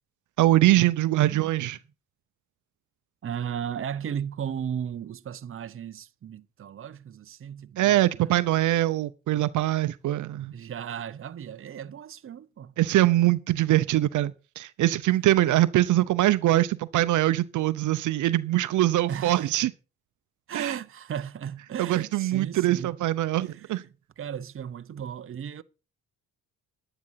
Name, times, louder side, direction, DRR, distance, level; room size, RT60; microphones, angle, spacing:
voice 1, 0.4-1.8 7.8-10.5 12.8-19.7 20.5-20.7 21.8-23.8, right 15 dB, 75° right, 0.8 m, -23 dB
voice 2, 1.1-1.5 3.2-8.5 10.5-12.7 19.1-19.5 20.5-23.0 23.4-23.7 24.2-25.6, right 8 dB, 45° right, 0.9 m, -35 dB
11.0 x 10.0 x 5.8 m
cardioid pair, 90°, 30 cm